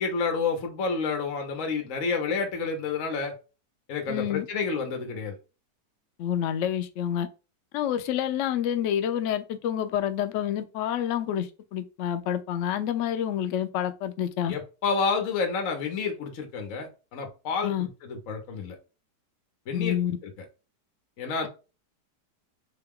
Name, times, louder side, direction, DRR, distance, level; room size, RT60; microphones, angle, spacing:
voice 1, 0.0-3.3 3.9-5.4 14.5-18.8 19.7-20.0 20.2-20.3 21.2-21.5, left 5 dB, 55° left, 1.1 m, -29 dB
voice 2, 4.1-4.5 6.2-7.3 7.7-14.5 17.6-17.9 19.7-20.1, left 10 dB, 80° left, 0.6 m, -28 dB
3.7 x 2.3 x 3.5 m
omnidirectional pair, 1.8 m